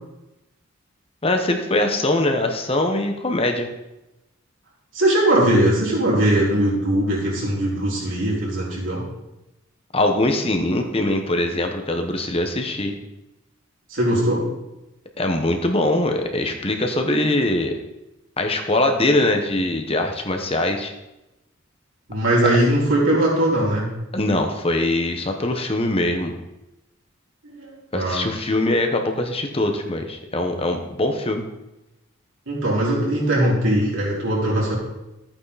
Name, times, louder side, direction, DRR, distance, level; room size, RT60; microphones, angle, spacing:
voice 1, 1.2-3.7 9.9-13.0 15.2-17.7 18.4-20.9 24.1-26.3 27.9-31.4, left 1 dB, 30° left, 4 dB, 1.2 m, -22 dB
voice 2, 4.9-9.0 13.9-14.5 22.1-23.9 27.4-28.2 32.5-34.8, right 1 dB, 70° right, -5 dB, 4.9 m, -20 dB
14.0 x 9.0 x 4.2 m, 0.96 s
head